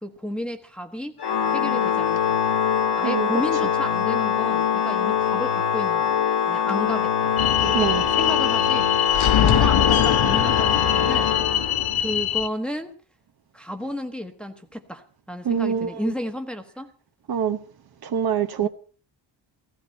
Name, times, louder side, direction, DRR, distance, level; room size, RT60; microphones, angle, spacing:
voice 1, 0.0-1.2 1.5-2.4 2.9-7.3 7.6-11.6 12.0-13.0 13.5-16.9 18.6-18.7, equal, ahead, 1.1 m, -32 dB
Organ, 1.2-12.1, left 8 dB, 55° left, 1.7 m, -23 dB
sound 1, 7.4-12.5, left 10 dB, 80° left, 1.0 m, -22 dB
voice 2, 15.4-15.9 17.3-17.6 18.0-18.7, right 8 dB, 50° right, 1.1 m, -24 dB
16.5 x 16.0 x 4.4 m
wide cardioid pair, 155°, 47 cm